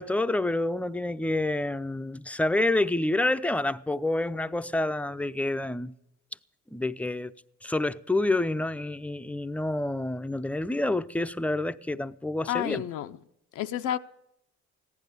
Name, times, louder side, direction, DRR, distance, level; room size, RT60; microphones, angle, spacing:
voice 1, 0.0-5.9 6.7-7.3 7.6-12.8, left 2 dB, 5° left, 0.5 m, -28 dB
voice 2, 12.5-13.2 13.5-14.0, left 11 dB, 85° left, 0.6 m, -30 dB
15.0 x 11.0 x 6.7 m
cardioid pair, 90°, 30 cm